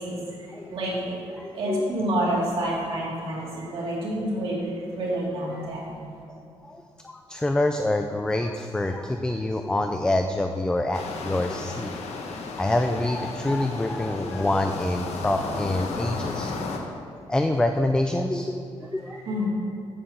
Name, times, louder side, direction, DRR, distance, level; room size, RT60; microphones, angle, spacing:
voice 1, 0.0-6.0 18.9-19.5, right 1 dB, 60° right, -6 dB, 2.6 m, -29 dB
voice 2, 1.4-1.9 6.6-6.8 7.3-11.9 12.6-16.5 17.3-19.2, left 1 dB, 10° left, 5 dB, 0.4 m, -26 dB
sound 1, 10.9-16.8, left 3 dB, 85° left, 1.2 m, -34 dB
9.2 x 6.8 x 7.4 m, 2.5 s
wide cardioid pair, 160°, 11 cm